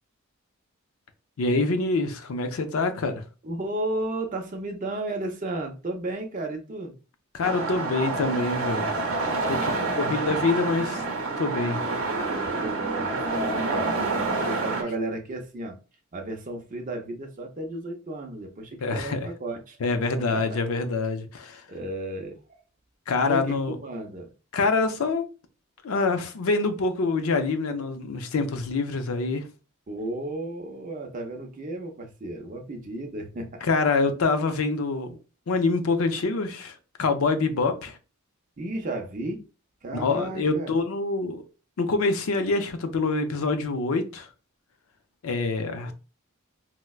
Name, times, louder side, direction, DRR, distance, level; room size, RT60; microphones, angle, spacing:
voice 1, 1.4-3.2 7.3-9.0 9.5-9.7 10.0-11.0 11.4-11.8 18.8-19.3 19.8-21.6 23.1-23.8 24.5-25.2 25.8-29.4 33.6-35.2 35.5-38.0 39.9-41.4 41.8-44.3 45.2-45.9, left 3 dB, 75° left, 0.5 m, -25 dB
voice 2, 3.4-6.9 9.6-10.4 12.6-15.8 16.1-19.8 20.3-20.6 21.7-22.6 23.2-24.3 29.9-33.6 38.6-39.4 39.8-40.7 45.8-45.9, right 2 dB, 35° right, 0.5 m, -34 dB
sound 1, 7.4-14.8, right 3 dB, 65° right, 0.8 m, -28 dB
4.4 x 2.0 x 2.3 m
head